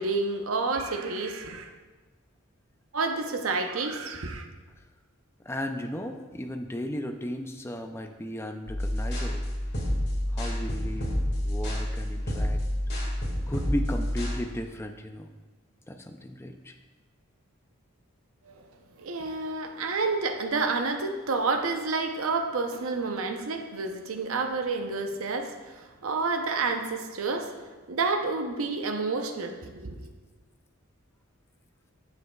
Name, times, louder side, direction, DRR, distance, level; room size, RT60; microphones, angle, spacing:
voice 1, 0.0-1.7 2.9-4.4 18.5-18.6 19.0-27.5 27.9-30.0, right 3 dB, 75° right, 5 dB, 0.7 m, -29 dB
voice 2, 5.4-9.5 10.3-12.6 13.0-13.1 13.5-15.3 15.9-16.7, left 1 dB, 10° left, 5 dB, 0.4 m, -35 dB
sound 1, 8.7-14.4, left 1 dB, 50° left, 1.8 m, -29 dB
9.3 x 7.7 x 2.3 m, 1.3 s
head